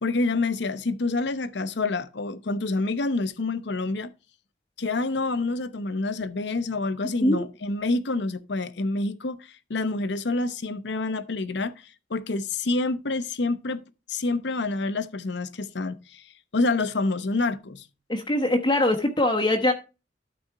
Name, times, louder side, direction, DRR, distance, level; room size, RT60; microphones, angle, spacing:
voice 1, 0.0-4.1 4.8-13.8 14.1-16.2 16.5-17.9, left 3 dB, 70° left, 0.8 m, -27 dB
voice 2, 18.1-19.7, left 1 dB, 25° left, 1.0 m, -22 dB
12.5 x 4.3 x 4.5 m
head